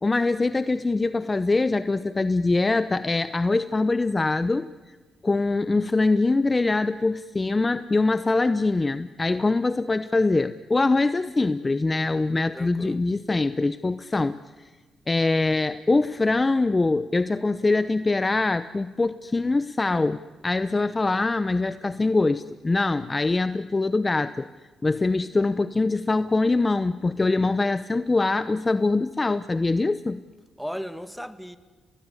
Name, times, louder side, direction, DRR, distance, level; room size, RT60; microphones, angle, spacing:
voice 1, 0.0-5.0 5.2-14.4 15.1-24.5 24.8-30.2, left 3 dB, 25° left, 0.8 m, -23 dB
voice 2, 12.5-13.0 30.6-31.6, equal, ahead, 2.0 m, -35 dB
29.5 x 20.0 x 9.8 m
cardioid pair, 75°, 0 cm